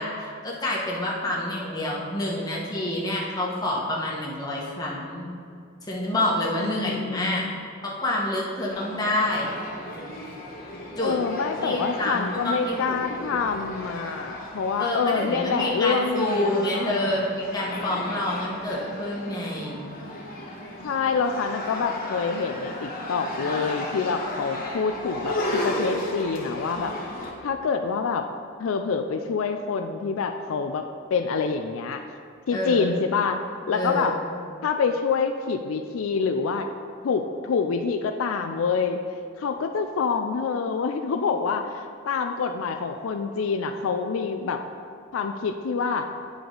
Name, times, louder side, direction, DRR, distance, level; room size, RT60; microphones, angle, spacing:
voice 1, 0.0-5.3 5.9-7.5 7.8-9.6 11.0-11.2 11.6-13.4 14.8-19.8 32.5-32.9 33.7-34.3, left 1 dB, 20° left, -4 dB, 1.2 m, -28 dB
voice 2, 6.6-7.5 11.0-17.1 20.8-26.9 27.4-28.3 28.6-32.0 32.5-33.4 33.7-34.1 34.6-36.6 37.0-39.0 39.4-44.6 45.1-46.1, left 5 dB, 80° left, 6 dB, 0.4 m, -26 dB
sound 1, 8.7-27.3, left 1 dB, 45° left, 1.2 m, -34 dB
9.4 x 4.8 x 3.9 m, 2.3 s
head